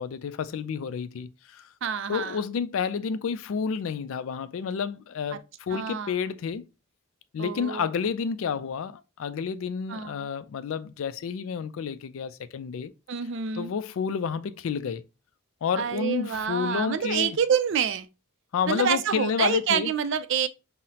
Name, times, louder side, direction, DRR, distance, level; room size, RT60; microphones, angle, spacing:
voice 1, 0.0-1.7 2.1-6.7 7.3-12.9 13.5-15.0 15.6-17.4 18.5-19.9, left 6 dB, 70° left, 0.3 m, -30 dB
voice 2, 1.8-2.4 5.3-5.4 5.7-6.1 7.4-7.9 9.9-10.3 13.1-13.7 15.8-18.1 18.7-20.5, right 7 dB, 55° right, 0.4 m, -27 dB
5.6 x 2.0 x 2.7 m
head